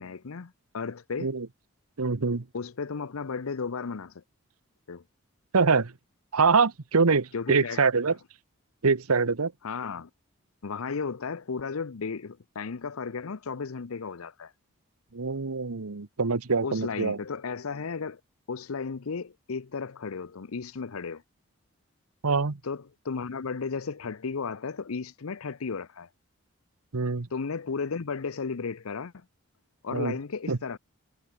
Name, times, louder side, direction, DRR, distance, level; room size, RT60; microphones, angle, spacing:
voice 1, 0.0-1.3 2.5-4.2 4.9-5.0 7.3-7.8 9.6-10.1 10.6-14.5 16.6-18.2 18.5-21.2 22.6-26.1 27.3-29.2 29.8-30.8, left 5 dB, 75° left, 0.7 m, -34 dB
voice 2, 2.0-2.4 5.5-5.9 6.3-8.1 8.8-9.5 15.1-17.2 22.2-22.6 26.9-27.3 29.9-30.1 30.5-30.6, right 4 dB, 85° right, 1.0 m, -24 dB
head